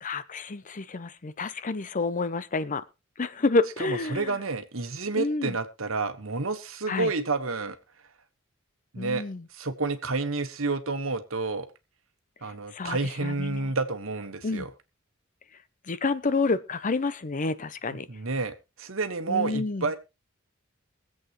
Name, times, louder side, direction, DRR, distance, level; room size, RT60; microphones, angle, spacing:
voice 1, 0.0-2.9 3.2-4.3 5.1-5.5 6.9-7.1 9.0-9.4 12.7-13.7 14.4-14.7 15.9-18.1 19.3-19.9, left 3 dB, 40° left, 0.6 m, -29 dB
voice 2, 3.8-7.8 8.9-9.2 9.5-11.7 12.4-14.7 18.1-20.0, right 3 dB, 80° right, 1.3 m, -30 dB
22.5 x 8.0 x 3.0 m
head